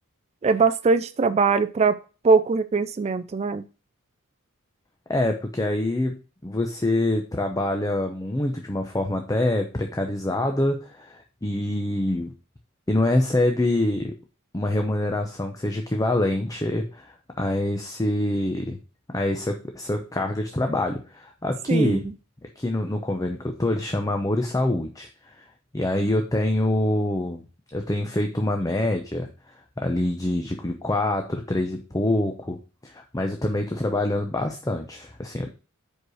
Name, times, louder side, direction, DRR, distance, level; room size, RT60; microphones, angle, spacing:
voice 1, 0.4-2.0 2.2-3.6 21.7-22.0, right 4 dB, 30° right, 10 dB, 0.3 m, -21 dB
voice 2, 5.1-6.2 6.4-12.3 12.9-14.1 14.5-18.8 19.1-22.1 22.6-25.4 25.7-27.4 27.7-32.6 32.8-35.5, left 1 dB, 15° left, 4 dB, 0.6 m, -25 dB
5.1 x 4.8 x 6.2 m, 0.34 s
head